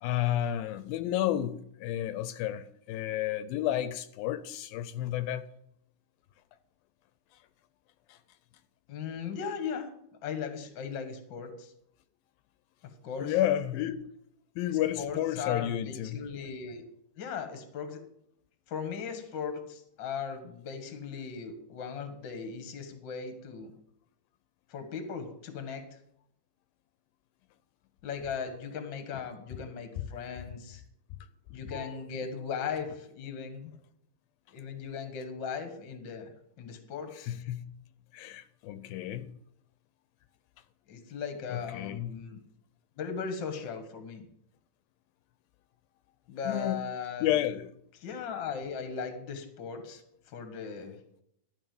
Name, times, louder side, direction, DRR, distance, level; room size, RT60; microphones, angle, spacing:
voice 1, 0.0-5.5 8.1-8.2 13.2-14.0 14.6-16.2 31.7-32.0 37.2-37.7 38.1-39.3 41.5-42.3 46.5-46.8 47.2-47.7, left 12 dB, 85° left, 2.3 m, -31 dB
voice 2, 8.9-9.9 10.2-11.7 13.0-13.4 14.7-16.8 17.2-18.0 18.7-23.7 24.7-25.8 28.0-30.8 31.5-33.7 34.5-37.3 40.9-42.4 43.0-44.3 46.3-47.4 48.0-50.0 50.3-51.0, left 6 dB, 50° left, 1.5 m, -38 dB
12.5 x 5.3 x 7.7 m
omnidirectional pair, 4.2 m